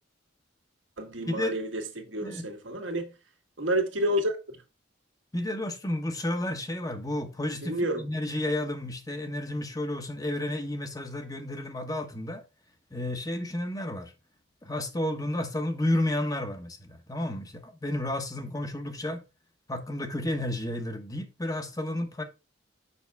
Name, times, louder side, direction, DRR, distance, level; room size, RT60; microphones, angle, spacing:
voice 1, 1.0-3.1 3.6-4.3 7.6-8.0, equal, 90° right, 1.7 m, -29 dB
voice 2, 5.3-12.4 12.9-14.1 14.6-19.2 19.7-22.2, left 1 dB, 20° left, 1.0 m, -31 dB
7.0 x 5.8 x 3.4 m
head